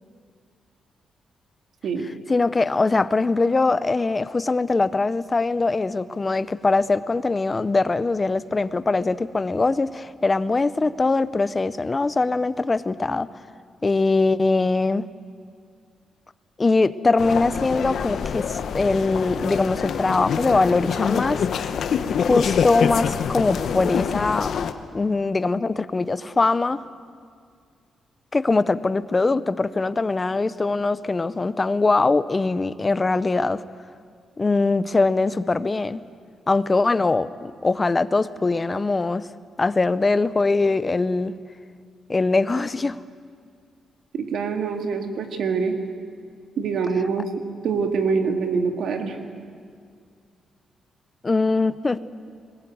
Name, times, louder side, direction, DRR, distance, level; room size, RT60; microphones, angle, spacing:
voice 1, 2.3-13.3 13.8-15.1 16.6-21.5 22.3-24.5 24.9-26.8 28.3-33.6 34.4-36.0 36.5-39.3 39.6-41.4 42.1-43.0 51.2-52.0, left 3 dB, 20° left, 15 dB, 0.5 m, -22 dB
sound 1, 17.2-24.7, left 7 dB, 55° left, 0.9 m, -25 dB
voice 2, 44.1-45.8 46.6-47.3 47.6-49.2, right 5 dB, 65° right, 5 dB, 2.0 m, -24 dB
20.5 x 20.0 x 9.3 m, 2.1 s
wide cardioid pair, 175°, 0 cm